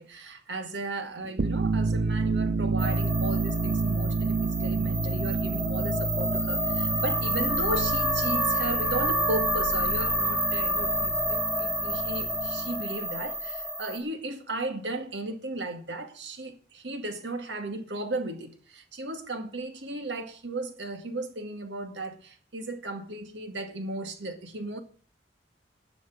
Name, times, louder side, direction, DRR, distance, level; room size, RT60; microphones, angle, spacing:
voice 1, 0.0-24.8, right 2 dB, 90° right, 2.2 m, -35 dB
sound 1, 1.3-12.8, right 4 dB, 55° right, 0.5 m, -30 dB
sound 2, 2.8-14.0, equal, ahead, 2.1 m, -29 dB
11.5 x 7.2 x 8.6 m
head